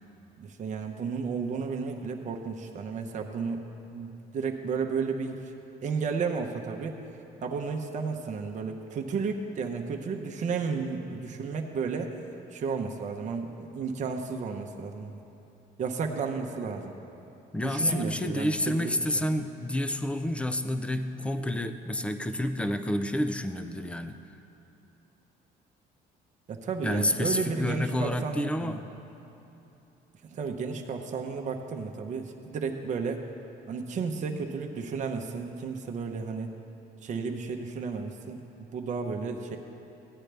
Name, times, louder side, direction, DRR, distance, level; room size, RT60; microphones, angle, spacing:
voice 1, 0.4-3.6 3.9-5.5 5.8-7.0 7.4-12.2 12.5-15.2 15.8-17.0 17.6-18.9 26.5-28.8 30.2-33.2 33.7-36.5 37.0-39.6, right 5 dB, 45° right, 2 dB, 0.8 m, -33 dB
voice 2, 17.5-24.2 26.8-28.9, left 1 dB, 5° left, 9 dB, 0.5 m, -29 dB
15.5 x 8.9 x 3.4 m, 3.0 s
cardioid pair, 110°, 17 cm